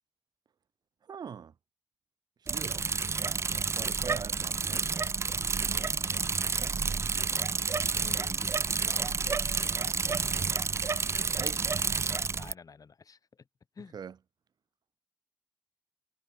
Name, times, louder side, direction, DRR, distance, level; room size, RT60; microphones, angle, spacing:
voice 1, 1.0-1.5 2.5-2.9 3.6-4.9 11.4-11.7 13.9-14.2, right 7 dB, 85° right, 0.9 m, -43 dB
Bicycle, 2.5-12.5, right 5 dB, 40° right, 0.5 m, -30 dB
voice 2, 4.5-4.8 5.7-6.2 7.9-9.2 10.1-10.4 12.3-13.5 13.7-13.9, left 5 dB, 60° left, 2.5 m, -51 dB
wide cardioid pair, 115°, 7 cm